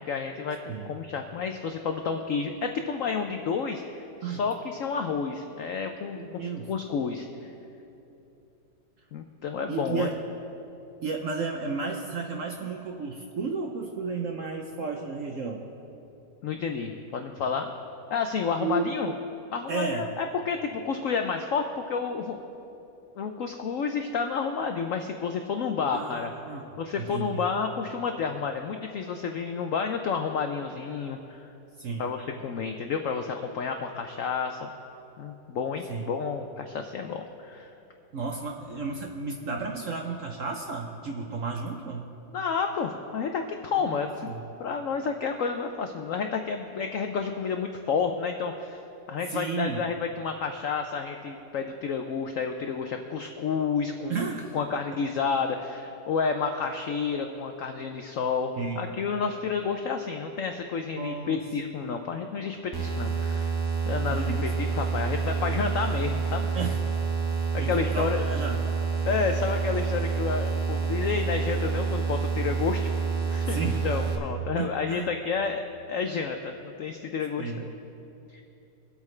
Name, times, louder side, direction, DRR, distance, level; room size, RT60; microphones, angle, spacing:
voice 1, 0.0-7.5 9.1-10.1 16.4-17.7 18.1-19.1 19.5-22.4 23.2-26.3 26.8-31.5 32.0-34.7 35.2-37.7 42.3-44.3 44.6-48.8 49.1-54.2 54.5-63.5 63.9-66.5 67.5-68.3 69.1-72.9 73.3-77.7 78.3-78.4, left 5 dB, 85° left, 5 dB, 0.7 m, -30 dB
voice 2, 6.2-6.7 9.7-10.2 11.0-15.6 18.6-18.9 19.7-20.1 25.9-26.6 27.0-27.5 31.8-32.1 35.9-36.1 38.1-42.1 43.9-44.4 49.3-49.8 54.1-54.5 58.6-58.8 61.0-61.4 64.1-64.5 66.5-66.8 67.6-68.7 73.5-73.8 74.6-75.1 77.4-77.6, right 4 dB, 65° right, 2 dB, 0.8 m, -33 dB
sound 1, 62.7-74.2, right 5 dB, 25° right, 0.4 m, -28 dB
22.5 x 8.2 x 3.2 m, 3.0 s
omnidirectional pair, 2.1 m